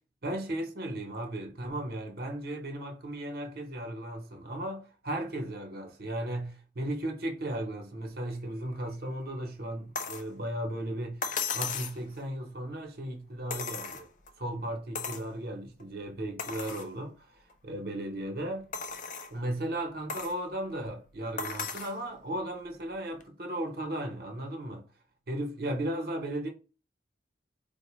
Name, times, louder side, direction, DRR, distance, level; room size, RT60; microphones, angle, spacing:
voice 1, 0.2-11.2 11.5-14.1 14.4-18.7 19.3-24.8 25.3-26.5, right 1 dB, 55° right, 0.8 m, -36 dB
sound 1, 9.9-10.3 11.2-12.0 13.5-14.3 14.9-15.3 15.8-15.9 16.4-16.9 17.5-17.6 18.7-19.3 20.1-20.4 21.4-22.0 23.2-23.3, left 5 dB, 45° left, 0.4 m, -35 dB
4.2 x 2.1 x 3.0 m
head